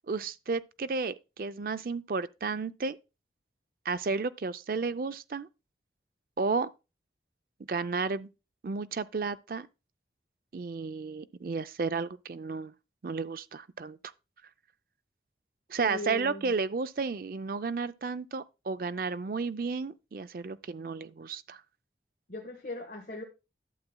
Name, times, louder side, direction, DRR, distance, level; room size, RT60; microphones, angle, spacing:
voice 1, 0.1-3.0 3.9-5.5 6.4-6.7 7.7-8.3 8.6-9.7 10.5-12.7 13.0-14.0 15.7-21.6, right 4 dB, 50° right, 0.4 m, -32 dB
voice 2, 15.8-16.5 22.3-23.2, left 2 dB, 50° left, 1.3 m, -39 dB
11.5 x 7.3 x 2.2 m
head